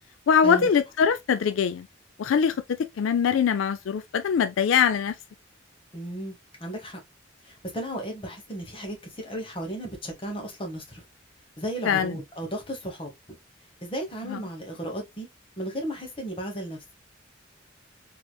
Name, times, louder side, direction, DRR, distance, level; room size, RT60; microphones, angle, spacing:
voice 1, 0.3-1.9 2.2-2.6 3.0-5.1 11.9-12.1 14.3-14.4, left 7 dB, 85° left, 0.4 m, -22 dB
voice 2, 5.9-7.0 7.4-11.0 11.6-13.1 13.8-15.3 15.6-16.8, right 1 dB, 25° left, 1.1 m, -34 dB
3.3 x 2.9 x 2.3 m
head